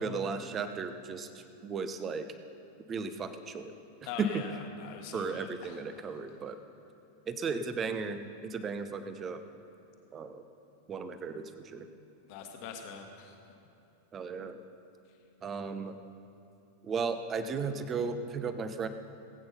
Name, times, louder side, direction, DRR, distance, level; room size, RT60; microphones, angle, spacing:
voice 1, 0.0-2.3 2.9-3.7 4.2-4.4 5.1-6.6 7.3-9.4 10.1-10.4 10.9-11.9 14.1-14.6 15.4-16.0 16.8-18.9, right 4 dB, 25° right, 10 dB, 1.0 m, -35 dB
voice 2, 4.0-4.5 4.8-5.8 12.3-13.3, left 7 dB, 45° left, 3 dB, 1.6 m, -43 dB
19.5 x 8.9 x 5.6 m, 2.9 s
figure-of-eight pair, 90°, 0 cm